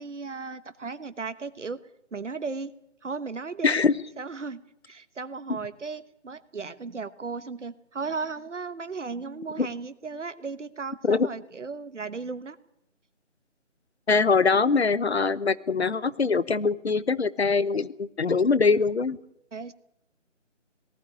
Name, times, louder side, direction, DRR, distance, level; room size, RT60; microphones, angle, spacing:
voice 1, 0.0-1.8 2.1-2.7 3.0-3.8 4.2-12.6 19.5-19.7, right 4 dB, 75° right, 13 dB, 1.2 m, -35 dB
voice 2, 3.6-3.9 5.5-5.6 9.6-9.7 11.0-11.3 14.1-19.2, left 4 dB, 60° left, 17 dB, 1.1 m, -23 dB
19.0 x 15.0 x 9.7 m, 0.80 s
figure-of-eight pair, 170°, 37 cm